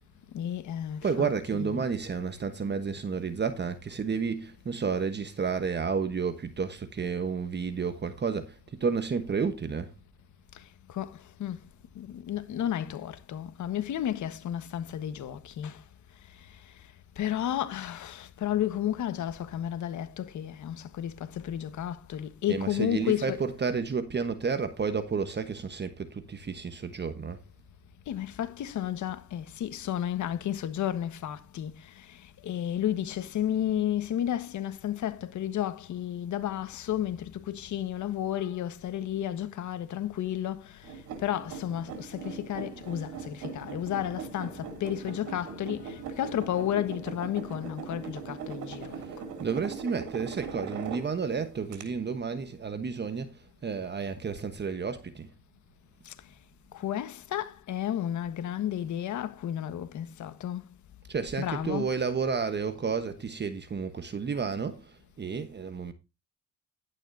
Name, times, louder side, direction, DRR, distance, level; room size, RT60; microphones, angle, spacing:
voice 1, 0.3-1.8 10.9-11.6 11.9-15.8 17.2-23.4 28.1-31.7 32.4-40.7 41.2-49.0 56.1-56.2 56.7-60.6 61.4-61.9, left 11 dB, 70° left, 1.4 m, -32 dB
voice 2, 1.0-9.9 22.5-27.4 49.1-55.3 61.1-65.9, right 5 dB, 35° right, 1.2 m, -31 dB
sound 1, 40.8-51.3 51.7-51.8, right 6 dB, 90° right, 3.2 m, -40 dB
11.5 x 9.9 x 2.7 m
cardioid pair, 90°, 30 cm